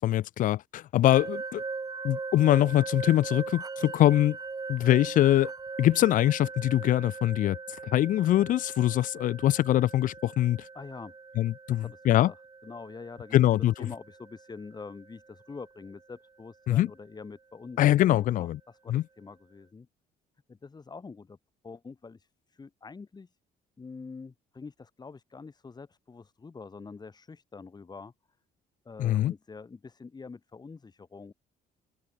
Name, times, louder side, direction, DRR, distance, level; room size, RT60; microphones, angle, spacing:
voice 1, 0.0-1.6 2.0-4.4 4.7-5.5 5.8-7.6 7.8-10.6 11.4-12.3 13.3-13.7 16.7-16.9 17.8-18.6 18.9-19.0 29.0-29.3, left 13 dB, 50° left, 0.4 m, -23 dB
sound 1, 1.1-15.9, right 4 dB, 20° right, 1.4 m, -40 dB
voice 2, 10.7-11.1 11.7-19.9 20.5-21.4 21.6-23.4 23.8-28.1 28.8-31.3, left 4 dB, 25° left, 3.0 m, -45 dB
cardioid pair, 110°, 17 cm